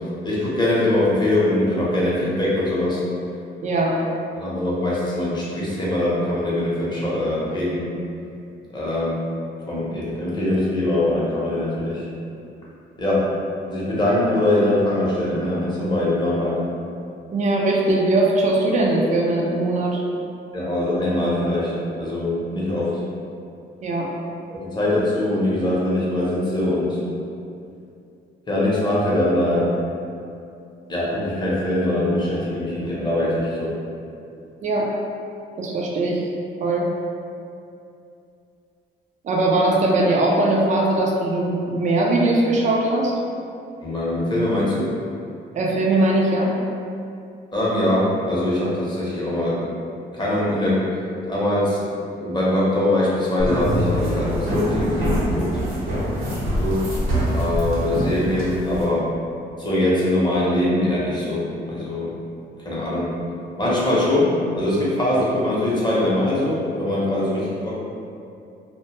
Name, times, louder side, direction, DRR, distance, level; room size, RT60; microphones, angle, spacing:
voice 1, 0.0-3.0 4.3-7.9 8.7-9.3 9.7-12.1 13.0-13.4 13.7-16.6 20.5-23.0 24.6-27.0 28.5-29.8 30.9-33.8 43.8-44.9 47.5-49.7 50.1-51.0 51.2-55.6 56.6-56.9 57.3-59.1 59.6-62.1 62.6-63.2 63.6-67.8, left 1 dB, 20° left, -7 dB, 0.7 m, -22 dB
voice 2, 3.6-4.0 17.3-20.0 23.8-24.1 34.6-34.9 35.6-36.2 36.6-36.9 39.2-43.1 45.5-46.5, right 2 dB, 40° right, -2 dB, 0.4 m, -20 dB
sound 1, 53.4-58.8, equal, 75° right, 0.8 m, -24 dB
2.1 x 2.1 x 2.9 m, 2.6 s
cardioid pair, 90°, 20 cm